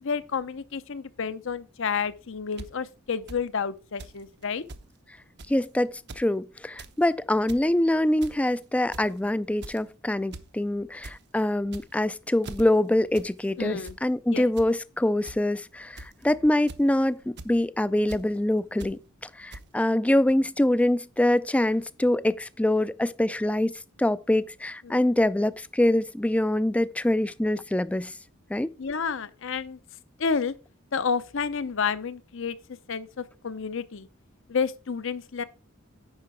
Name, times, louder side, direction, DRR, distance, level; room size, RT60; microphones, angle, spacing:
voice 1, 0.0-4.6 13.6-14.0 14.3-14.5 24.8-25.1 28.8-29.8 30.2-30.5 30.9-32.6 32.9-34.1 34.5-35.4, left 6 dB, 65° left, 0.7 m, -30 dB
sound 1, 2.6-2.7 3.3-3.4 4.0-4.2 4.4-4.5 4.7-4.8 5.4-5.6 6.0-6.2 6.6-6.9 7.3-7.6 8.2-8.5 8.9-9.2 9.6-9.9 10.3-10.5 10.8-11.1 11.6-12.0 12.4-12.6 13.1-13.3 13.6-14.0 14.6-14.7 15.2-15.4 16.0-16.2 16.7-16.9 17.4-17.5 18.1-18.2 18.8-18.9 19.5-19.6, right 2 dB, 55° right, 0.8 m, -41 dB
voice 2, 5.5-19.0 19.4-23.7 24.0-28.1 28.5-28.7, left 1 dB, 5° left, 0.3 m, -24 dB
9.7 x 5.6 x 4.7 m
head